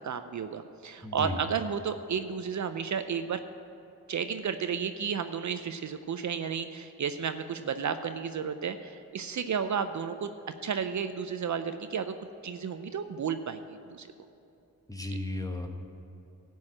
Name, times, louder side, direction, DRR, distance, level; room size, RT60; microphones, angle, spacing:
voice 1, 0.0-3.4 4.1-10.3 10.6-12.1 12.4-14.1 15.1-15.2, right 7 dB, 50° right, 9 dB, 0.6 m, -32 dB
voice 2, 1.0-1.3 14.9-15.7, left 2 dB, 10° left, 4 dB, 1.3 m, -34 dB
13.0 x 4.7 x 8.6 m, 2.8 s
cardioid pair, 55°, 37 cm